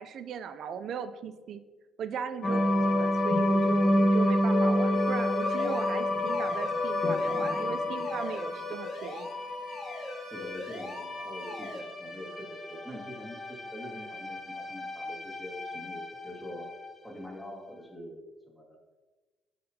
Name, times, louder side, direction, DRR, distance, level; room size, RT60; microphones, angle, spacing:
voice 1, 0.0-1.6 2.0-9.3, right 7 dB, 60° right, 11 dB, 0.4 m, -38 dB
sound 1, 2.4-16.9, left 1 dB, 35° left, 1.4 m, -29 dB
sound 2, 4.9-11.8, left 2 dB, 70° left, 2.2 m, -41 dB
voice 2, 10.3-16.7 17.0-18.6, equal, 5° left, -2 dB, 1.9 m, -44 dB
11.5 x 4.1 x 2.8 m, 1.3 s
cardioid pair, 95°, 0 cm